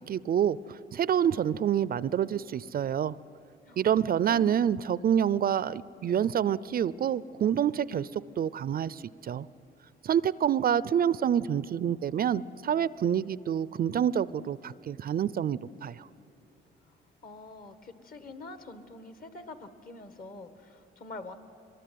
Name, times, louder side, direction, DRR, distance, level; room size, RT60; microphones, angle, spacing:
voice 1, 0.0-3.1 3.8-9.5 10.0-16.1, right 9 dB, 50° right, 19 dB, 0.5 m, -27 dB
voice 2, 3.7-4.5 17.2-21.3, left 3 dB, 45° left, 10 dB, 1.7 m, -45 dB
22.5 x 20.0 x 9.4 m, 2.9 s
cardioid pair, 90°, 20 cm